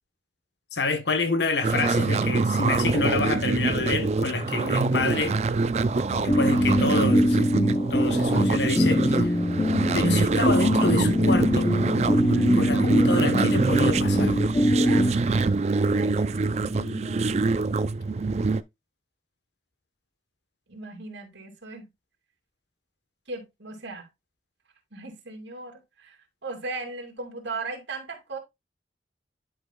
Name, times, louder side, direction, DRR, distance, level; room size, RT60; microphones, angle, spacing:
voice 1, 0.7-5.4 6.2-7.5 7.9-9.3 9.9-11.7 12.5-14.4, left 3 dB, 70° left, 1.1 m, -28 dB
sound 1, 1.6-18.6, right 3 dB, 35° right, 0.4 m, -25 dB
sound 2, 6.1-15.1, left 1 dB, 25° left, 0.5 m, -23 dB
voice 2, 12.3-12.7 14.8-15.1 15.8-17.4 20.7-21.9 23.3-24.1 24.9-26.2 26.4-28.4, right 3 dB, 90° right, 2.7 m, -38 dB
11.0 x 5.1 x 2.3 m
head